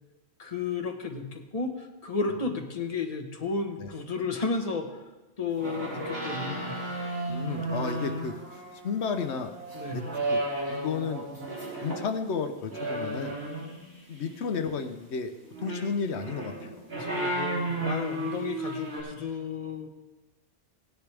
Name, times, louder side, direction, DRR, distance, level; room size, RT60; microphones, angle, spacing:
voice 1, 0.4-4.9 5.4-6.7 9.7-10.0 16.9-19.9, left 4 dB, 35° left, 3 dB, 1.2 m, -33 dB
sound 1, 5.6-12.1 12.7-13.9 15.4-19.0, right 1 dB, 75° right, 3.2 m, -33 dB
voice 2, 7.3-9.6 9.9-10.4 10.7-11.2 11.7-13.3 14.1-15.3 15.6-16.9, left 5 dB, 85° left, 7 dB, 1.1 m, -33 dB
17.0 x 10.5 x 3.4 m, 1.1 s
omnidirectional pair, 1.1 m